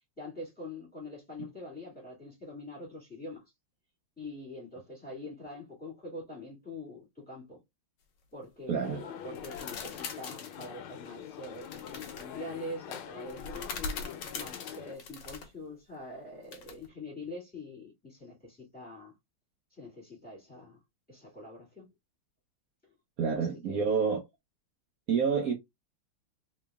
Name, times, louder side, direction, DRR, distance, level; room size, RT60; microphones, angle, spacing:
voice 1, 0.2-3.4 4.2-7.6 8.3-13.8 14.3-19.1 19.8-20.8 21.1-21.9 23.7-23.8, left 1 dB, 5° left, 1.7 m, -44 dB
voice 2, 8.7-9.0 23.2-24.2 25.1-25.5, right 6 dB, 70° right, 0.8 m, -28 dB
sound 1, 8.8-15.0, left 9 dB, 80° left, 1.5 m, -44 dB
sound 2, 9.3-10.7 11.6-12.3 13.3-15.5 16.5-16.9, left 4 dB, 65° left, 1.3 m, -41 dB
3.9 x 3.2 x 2.2 m
omnidirectional pair, 2.4 m